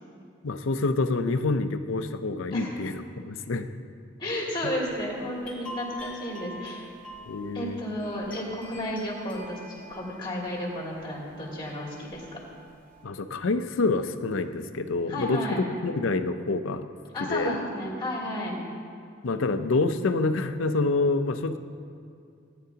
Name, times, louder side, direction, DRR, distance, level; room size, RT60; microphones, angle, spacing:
voice 1, 0.4-3.7 4.6-4.7 7.3-7.8 13.0-16.9 17.2-17.5 19.2-21.6, left 3 dB, 85° left, 9 dB, 0.6 m, -27 dB
voice 2, 4.2-6.9 7.5-12.4 15.1-15.6 17.1-18.6, left 1 dB, 25° left, -5 dB, 2.8 m, -32 dB
sound 1, 4.6-13.0, equal, 5° left, 2.7 m, -46 dB
17.5 x 10.0 x 2.8 m, 2.4 s
head